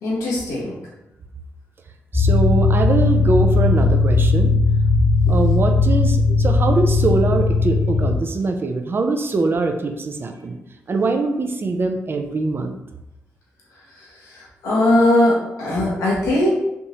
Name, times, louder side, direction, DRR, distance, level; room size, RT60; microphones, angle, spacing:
voice 1, 0.0-0.8 14.0-16.5, left 1 dB, 90° left, -6 dB, 0.9 m, -20 dB
sound 1, 2.1-8.2, left 3 dB, 25° right, 1.2 m, -17 dB
voice 2, 2.1-4.5 5.3-10.6 10.9-12.8, right 3 dB, 45° right, 5 dB, 0.4 m, -22 dB
3.4 x 2.7 x 2.8 m, 0.92 s
supercardioid pair, 45°, 5 cm